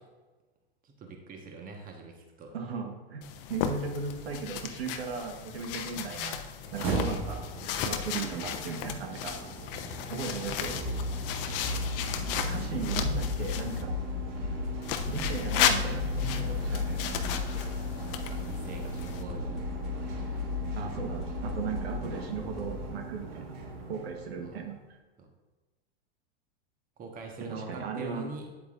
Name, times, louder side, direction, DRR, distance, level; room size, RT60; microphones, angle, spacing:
voice 1, 0.8-2.5 10.6-11.1 17.9-19.6 20.0-20.4 24.4-24.7 25.2-25.3 27.0-28.4, right 3 dB, 25° right, 2 dB, 1.3 m, -44 dB
voice 2, 2.5-3.2 3.5-6.4 6.7-7.4 7.8-9.4 10.1-10.7 12.4-13.9 15.1-17.1 20.7-23.5 23.9-24.8 27.5-28.3, right 5 dB, 75° right, 3 dB, 1.3 m, -36 dB
sound 1, 3.2-13.8 14.8-19.2, left 9 dB, 60° left, 0.8 m, -35 dB
sound 2, 6.6-24.7, left 2 dB, 55° right, 1.7 m, -36 dB
sound 3, 10.7-23.0, left 1 dB, ahead, 2.2 m, -39 dB
8.8 x 8.0 x 2.5 m, 1.3 s
hypercardioid pair, 115°, 31 cm